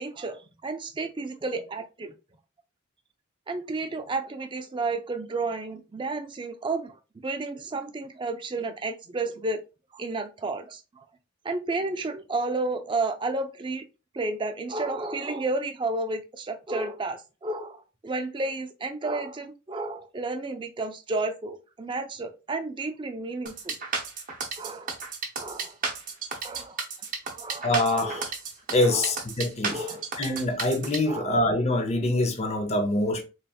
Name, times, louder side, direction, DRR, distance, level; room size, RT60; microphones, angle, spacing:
voice 1, 0.0-2.1 3.5-7.0 7.2-9.6 9.9-11.0 11.4-13.8 14.1-23.8 24.6-25.0 25.4-25.8 26.4-26.8 27.3-27.7 28.0-28.2 28.8-29.1 29.7-30.0 31.1-31.4, right 3 dB, 20° right, 0.4 m, -32 dB
sound 1, 23.5-31.0, right 4 dB, 40° right, 0.8 m, -32 dB
voice 2, 27.6-28.3 28.7-29.8 30.2-33.2, left 1 dB, 30° left, 0.6 m, -25 dB
4.1 x 3.2 x 2.3 m
head